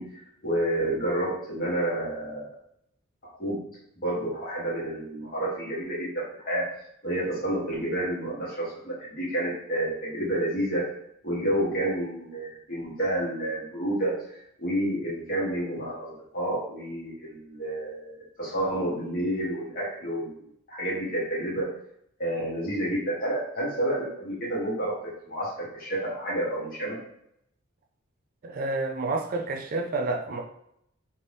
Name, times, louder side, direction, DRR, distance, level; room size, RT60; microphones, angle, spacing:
voice 1, 0.0-2.5 3.4-3.6 4.0-6.7 7.0-10.9 11.2-20.4 20.7-21.7 22.2-27.0, right 1 dB, 45° left, -6 dB, 1.2 m, -30 dB
voice 2, 28.4-30.4, right 2 dB, 45° right, 3 dB, 0.3 m, -29 dB
2.7 x 2.5 x 3.3 m, 0.74 s
head